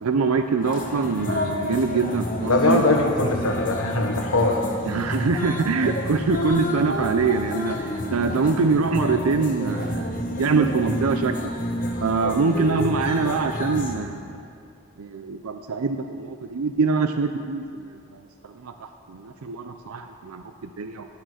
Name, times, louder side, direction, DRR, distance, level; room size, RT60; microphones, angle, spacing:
voice 1, 0.0-2.8 4.9-10.1 10.4-11.5 12.0-14.4 15.0-18.0 18.4-21.1, right 4 dB, 90° right, 7 dB, 0.5 m, -24 dB
sound 1, 0.6-14.0, equal, 40° left, 1.2 m, -29 dB
voice 2, 2.4-4.6 8.2-8.3 12.2-12.4, left 2 dB, 80° left, 3 dB, 1.4 m, -22 dB
18.5 x 6.5 x 6.4 m, 2.4 s
head